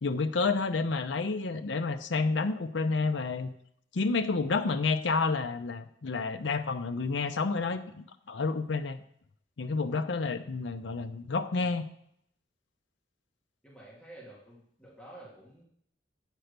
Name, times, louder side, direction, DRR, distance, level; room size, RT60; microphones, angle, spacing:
voice 1, 0.0-3.5 3.9-9.0 9.6-11.8, left 4 dB, 85° left, 8 dB, 0.6 m, -30 dB
voice 2, 13.6-15.7, right 1 dB, 5° left, -7 dB, 2.6 m, -50 dB
9.1 x 4.5 x 6.6 m, 0.68 s
head